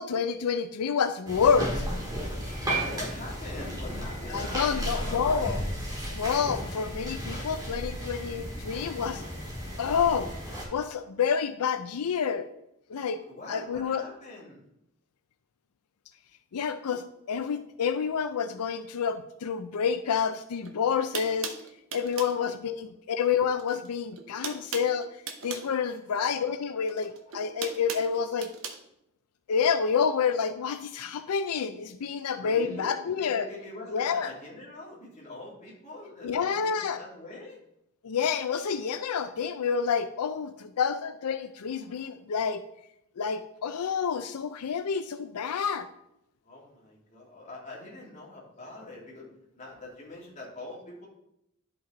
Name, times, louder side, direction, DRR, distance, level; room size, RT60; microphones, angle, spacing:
voice 1, 0.0-1.9 4.3-5.6 6.1-9.2 9.8-10.3 10.7-12.5 12.9-13.2 13.5-14.0 16.5-21.5 21.9-25.1 25.4-28.5 29.5-33.5 33.9-34.3 36.2-37.0 38.0-42.6 43.2-45.9, left 6 dB, 90° left, 9 dB, 0.4 m, -28 dB
sound 1, 1.3-10.6, equal, 15° right, 2.0 m, -34 dB
voice 2, 2.6-5.6 13.3-14.6 22.2-22.5 22.7-22.9 25.9-26.0 32.3-37.6 46.4-49.3 49.5-51.1, left 2 dB, 35° left, -4 dB, 2.6 m, -43 dB
sound 2, 20.6-20.7 21.1-22.4 23.6-23.9 24.1-25.7 26.9-28.8, right 6 dB, 60° right, 0.9 m, -38 dB
10.5 x 5.3 x 3.9 m, 0.80 s
head